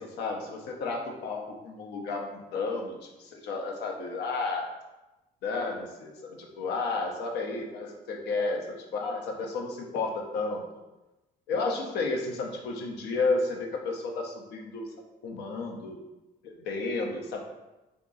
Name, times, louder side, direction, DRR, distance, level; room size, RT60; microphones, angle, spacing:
voice 1, 0.0-4.7 5.4-10.6 11.5-14.9 15.2-16.0 16.4-17.4, left 3 dB, 80° left, 1 dB, 0.8 m, -32 dB
3.7 x 2.9 x 3.9 m, 1.0 s
cardioid pair, 110°, 17 cm